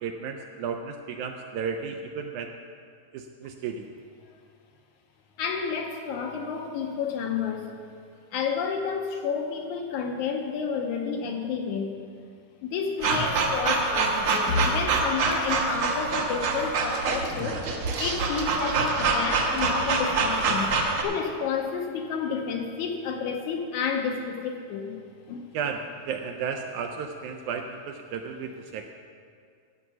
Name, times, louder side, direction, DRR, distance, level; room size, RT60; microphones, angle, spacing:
voice 1, 0.0-2.5 3.1-3.9 25.5-28.9, right 6 dB, 80° right, 5 dB, 1.8 m, -33 dB
voice 2, 5.4-7.7 8.3-12.0 12.6-17.6 18.0-25.0 25.3-25.5, left 5 dB, 75° left, 3 dB, 2.0 m, -30 dB
sound 1, 13.0-21.0, right 3 dB, 65° right, 1.3 m, -25 dB
12.5 x 8.0 x 6.0 m, 2.2 s
omnidirectional pair, 3.9 m